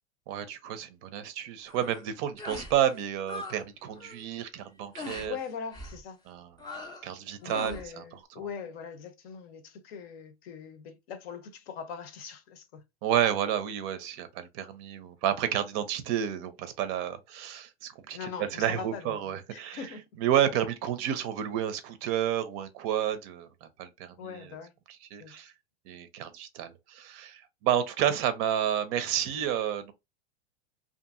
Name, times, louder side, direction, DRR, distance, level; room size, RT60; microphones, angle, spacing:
voice 1, 0.3-5.3 6.3-6.5 7.0-8.0 13.0-19.8 20.2-24.5 25.1-25.5 25.9-29.9, right 10 dB, 40° right, 0.5 m, -30 dB
sound 1, 1.7-2.0 2.4-2.8 3.0-3.6 3.9-4.2 4.9-5.3 5.7-6.0 6.6-7.1 7.4-7.9, left 2 dB, 15° left, 0.4 m, -41 dB
voice 2, 5.2-6.2 7.4-12.8 18.1-20.0 24.2-24.7 25.2-25.5, left 6 dB, 60° left, 0.7 m, -41 dB
2.7 x 2.6 x 2.5 m
supercardioid pair, 130°, 34 cm